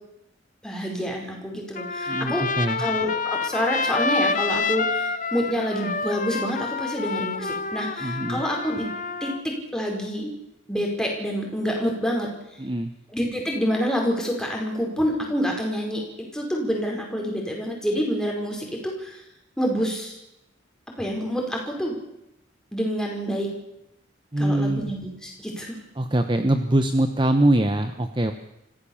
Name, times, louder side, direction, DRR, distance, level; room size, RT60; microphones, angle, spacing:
voice 1, 0.6-2.5 2.8-8.9 9.2-10.3 10.7-12.3 13.1-16.0 16.3-19.2 19.6-20.2 21.0-21.9 22.7-23.5 24.4-25.7, equal, 5° left, 0 dB, 4.9 m, -27 dB
Trumpet, 1.7-9.4, left 4 dB, 40° left, 1.2 m, -28 dB
voice 2, 2.1-2.8 8.0-8.4 12.6-12.9 24.3-24.9 26.0-28.3, right 1 dB, 25° right, 8 dB, 0.9 m, -23 dB
25.5 x 15.0 x 7.2 m, 0.85 s
head